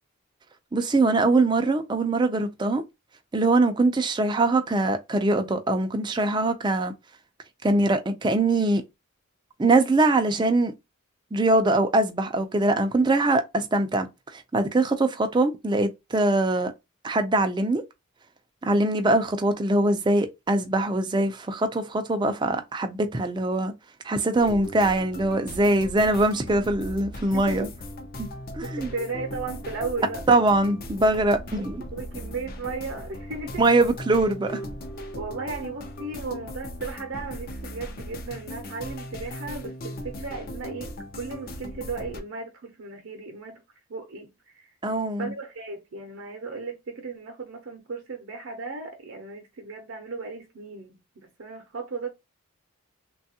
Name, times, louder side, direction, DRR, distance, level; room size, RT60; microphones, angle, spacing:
voice 1, 0.7-2.8 3.3-6.9 7.6-8.8 9.6-10.7 11.3-14.1 14.3-16.7 17.0-17.8 18.6-23.7 24.0-27.7 28.2-28.3 28.5-28.9 30.3-31.8 33.6-34.8 44.8-45.3, right 2 dB, 20° right, 0.4 m, -22 dB
sound 1, 24.4-42.2, left 1 dB, 40° left, 0.5 m, -38 dB
voice 2, 27.3-27.7 28.6-30.2 31.9-33.6 35.1-43.6 43.9-44.7 45.2-52.1, right 4 dB, 65° right, 0.6 m, -35 dB
3.3 x 2.3 x 2.7 m
head